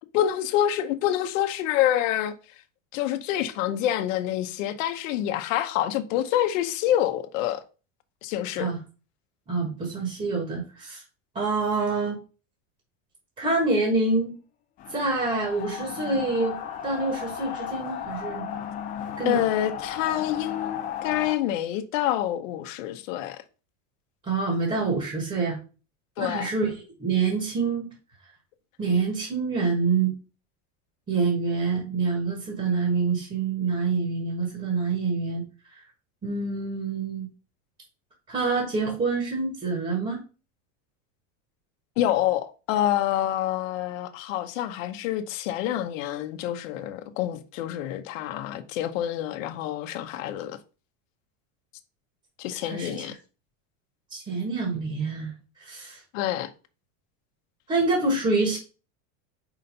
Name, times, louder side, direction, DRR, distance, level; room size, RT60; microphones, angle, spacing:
voice 1, 0.1-2.3 2.9-7.6 8.2-8.7 19.2-23.4 26.2-26.5 42.0-50.6 52.4-53.2 56.1-56.5, left 12 dB, 80° left, 0.9 m, -27 dB
voice 2, 9.5-11.0 11.3-12.2 13.4-14.3 14.9-16.6 16.8-18.4 19.2-19.4 24.2-25.6 26.2-27.9 28.8-30.1 31.1-35.4 35.7-35.8 36.2-37.3 38.3-40.2 52.6-53.1 54.1-55.3 55.6-56.0 57.7-58.6, right 4 dB, 20° right, 1.4 m, -26 dB
sound 1, 14.8-21.3, left 9 dB, 25° left, 0.3 m, -35 dB
4.9 x 4.2 x 5.3 m
cardioid pair, 165°, 38 cm